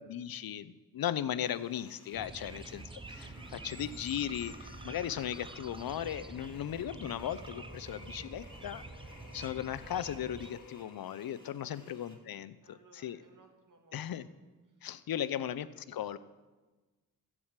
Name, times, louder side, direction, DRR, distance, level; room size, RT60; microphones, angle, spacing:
voice 1, 0.0-8.8 9.3-13.2 13.9-14.3 14.8-16.2, left 10 dB, 70° left, 15 dB, 0.6 m, -37 dB
sound 1, 1.5-12.1, left 1 dB, 10° left, 2.4 m, -62 dB
sound 2, 2.1-10.5, right 3 dB, 15° right, 0.5 m, -47 dB
sound 3, 3.1-11.4, left 4 dB, 55° left, 1.5 m, -56 dB
voice 2, 11.4-11.9 12.6-14.3 14.7-14.8, right 4 dB, 55° right, 4 dB, 1.8 m, -62 dB
14.5 x 4.9 x 7.4 m, 1.2 s
cardioid pair, 65°, 37 cm